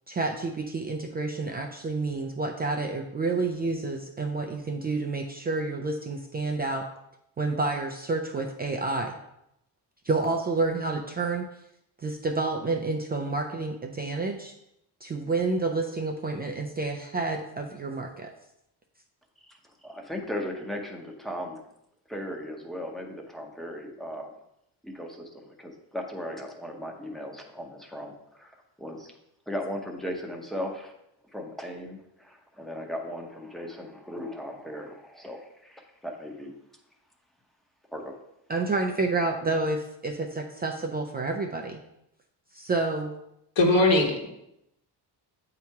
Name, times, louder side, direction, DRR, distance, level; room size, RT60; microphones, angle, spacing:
voice 1, 0.1-6.9 7.4-9.2 10.0-11.5 12.0-14.5 15.0-18.3 38.5-41.8 42.5-43.1, right 3 dB, 25° right, 2 dB, 0.3 m, -29 dB
voice 2, 19.8-21.6 22.1-24.3 24.8-29.1 29.5-30.9 31.3-36.5 37.9-38.1, equal, ahead, 1 dB, 0.7 m, -37 dB
voice 3, 43.6-44.3, left 2 dB, 85° left, 1 dB, 1.3 m, -20 dB
8.2 x 2.9 x 4.5 m, 0.81 s
cardioid pair, 150°, 43 cm